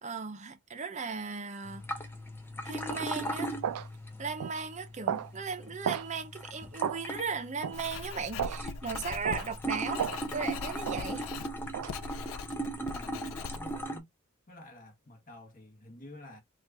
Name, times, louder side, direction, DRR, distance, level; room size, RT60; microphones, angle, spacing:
voice 1, 0.0-1.9 2.6-3.6 4.2-10.0 10.3-11.3, right 5 dB, 35° right, 0.6 m, -37 dB
sound 1, 1.6-14.0, right 1 dB, 10° left, 0.5 m, -39 dB
sound 2, 2.9-3.1 3.6-3.9 4.4-4.6 5.1-5.3 5.8-6.1 6.8-7.0 7.6-7.8 8.4-8.6 9.2-9.5 10.0-10.2 10.8-11.0 11.7-11.9, right 8 dB, 85° right, 0.3 m, -33 dB
Writing, 7.7-13.9, left 5 dB, 65° left, 0.3 m, -42 dB
voice 2, 12.8-14.1 14.5-16.4, left 1 dB, 40° left, 1.1 m, -50 dB
2.9 x 2.4 x 3.3 m
head